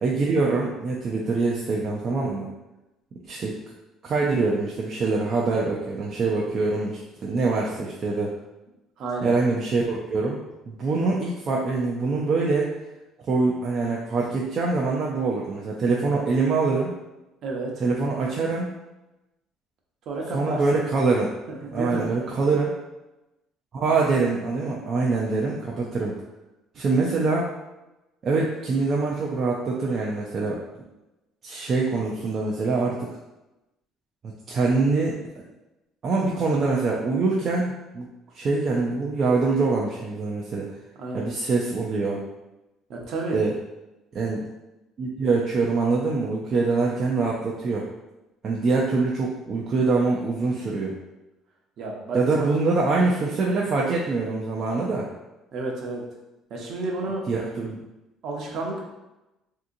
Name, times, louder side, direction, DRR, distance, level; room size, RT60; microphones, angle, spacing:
voice 1, 0.0-2.5 3.3-3.5 4.0-8.3 9.2-10.4 10.7-12.7 13.2-16.9 17.8-18.7 20.3-21.3 21.7-22.7 23.7-26.2 26.7-27.5 28.2-30.6 31.4-33.1 34.5-35.2 36.0-38.1 38.3-40.7 41.1-42.2 43.3-43.5 44.1-44.4 45.0-47.9 48.4-51.0 52.1-55.1 57.3-57.8, right 3 dB, 35° right, -4 dB, 0.4 m, -24 dB
voice 2, 9.0-9.3 17.4-17.8 20.1-20.6 21.5-22.1 41.0-41.3 42.9-43.4 51.8-52.5 55.5-56.0 56.5-57.2 58.2-58.8, right 2 dB, 50° right, -1 dB, 0.8 m, -31 dB
3.6 x 2.7 x 2.5 m, 0.99 s
cardioid pair, 150°, 0 cm